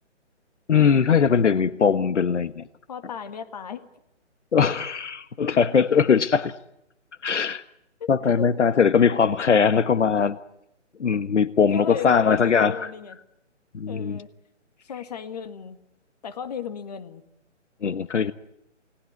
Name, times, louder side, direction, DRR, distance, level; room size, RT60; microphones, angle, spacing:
voice 1, 0.7-2.6 4.5-6.5 7.2-7.6 8.1-10.4 11.0-12.8 13.7-14.2 17.8-18.3, left 6 dB, 70° left, 14 dB, 1.4 m, -20 dB
voice 2, 2.9-3.8 8.0-8.5 11.7-13.2 13.9-14.3 14.8-15.8 16.2-17.2, left 7 dB, 35° left, 10 dB, 2.0 m, -35 dB
29.5 x 19.5 x 9.6 m, 0.82 s
hypercardioid pair, 170°, 37 cm